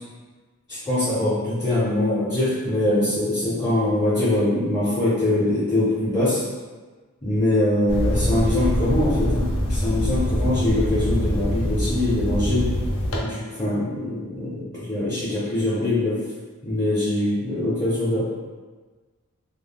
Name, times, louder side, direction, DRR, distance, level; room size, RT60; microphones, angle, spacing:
voice 1, 0.7-6.4 7.2-12.7 13.2-16.2 16.6-18.2, left 1 dB, 15° left, -11 dB, 0.5 m, -23 dB
sound 1, 7.9-13.2, equal, 70° left, 0.5 m, -24 dB
2.1 x 2.0 x 3.3 m, 1.4 s
head